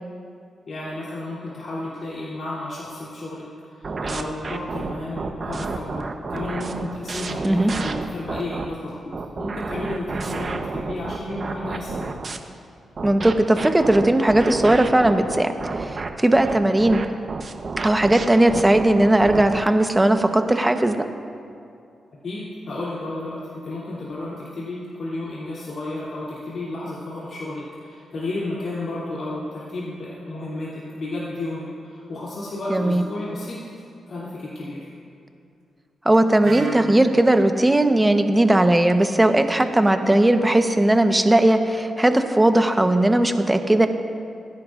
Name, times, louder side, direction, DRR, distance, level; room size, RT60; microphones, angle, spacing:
voice 1, 0.7-8.9 9.3-12.1 22.2-33.7 34.1-34.9, left 2 dB, 65° left, -8 dB, 3.0 m, -32 dB
sound 1, 3.8-8.7 9.1-12.4 13.0-19.7, right 4 dB, 50° right, 0.9 m, -30 dB
voice 2, 13.0-17.0 17.8-21.1 32.7-33.0 36.0-43.9, right 1 dB, 15° right, 7 dB, 1.0 m, -18 dB
Wind instrument woodwind instrument, 36.4-40.3, right 3 dB, 90° right, 2.8 m, -40 dB
28.5 x 10.5 x 2.5 m, 2.5 s
cardioid pair, 65°, 0 cm